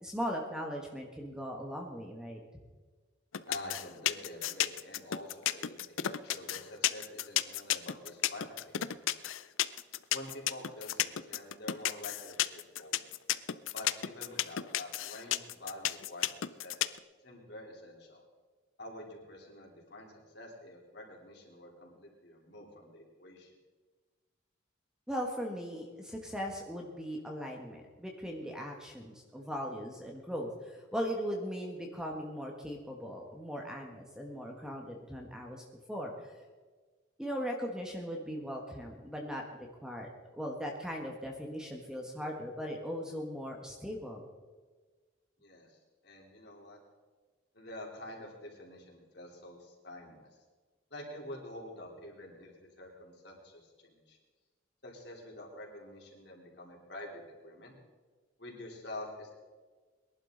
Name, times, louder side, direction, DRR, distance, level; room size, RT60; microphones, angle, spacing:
voice 1, 0.0-2.4 25.1-35.6 35.9-36.3 37.2-39.4 39.8-44.3, equal, 5° right, 0 dB, 1.3 m, -39 dB
sound 1, 3.3-17.0, left 12 dB, 85° left, 0.5 m, -32 dB
voice 2, 3.5-9.1 10.1-13.0 13.7-16.3 16.6-16.8 17.2-18.2 18.8-20.1 20.3-23.5 45.4-45.8 46.0-46.8 47.5-50.3 50.9-54.2 54.8-57.7 58.4-59.3, left 1 dB, 55° left, -1 dB, 3.4 m, -47 dB
22.0 x 11.5 x 3.9 m, 1.4 s
head